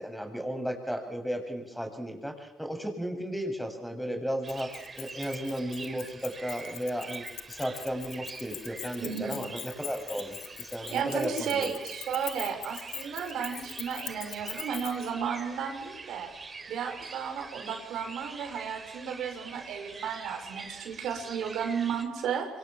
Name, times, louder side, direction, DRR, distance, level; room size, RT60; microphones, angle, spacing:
voice 1, 0.0-4.7 5.0-11.7, equal, ahead, 5 dB, 7.8 m, -34 dB
sound 1, 4.4-22.0, right 4 dB, 35° right, 4.3 m, -45 dB
Keys jangling, 4.5-15.1, left 11 dB, 75° left, 2.0 m, -42 dB
voice 2, 9.0-9.4 10.9-16.3 16.7-22.5, right 7 dB, 75° right, 4 dB, 6.3 m, -33 dB
27.5 x 23.5 x 7.5 m, 1.1 s
supercardioid pair, 70°, 0 cm